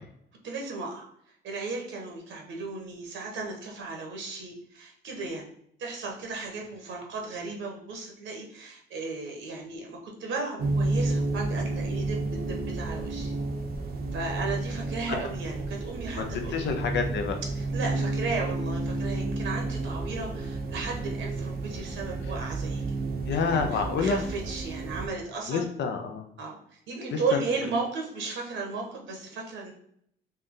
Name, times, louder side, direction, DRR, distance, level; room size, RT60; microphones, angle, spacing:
voice 1, 0.4-1.1 1.4-5.5 5.8-13.3 14.1-16.7 17.5-22.8 23.3-25.7 26.4-29.7, right 3 dB, 75° right, 1 dB, 1.1 m, -35 dB
sound 1, 10.6-25.1, right 2 dB, 50° right, 0.7 m, -31 dB
voice 2, 16.2-17.4 23.3-24.2 25.5-26.2 27.1-27.2, left 5 dB, 65° left, 5 dB, 0.6 m, -28 dB
3.3 x 2.7 x 3.7 m, 0.69 s
cardioid pair, 90°, 20 cm